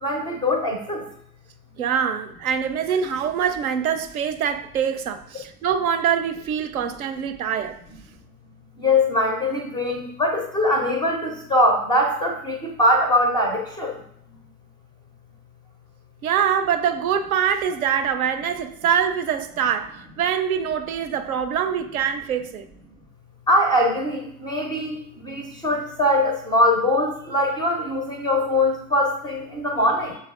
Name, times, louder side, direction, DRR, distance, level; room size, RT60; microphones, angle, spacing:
voice 1, 0.0-1.0 8.8-13.9 23.5-25.0 25.2-30.2, left 1 dB, 10° left, 0.4 m, -22 dB
voice 2, 1.8-7.8 16.2-22.6, right 8 dB, 70° right, 0.6 m, -24 dB
6.8 x 3.2 x 2.3 m
figure-of-eight pair, 85°, 44 cm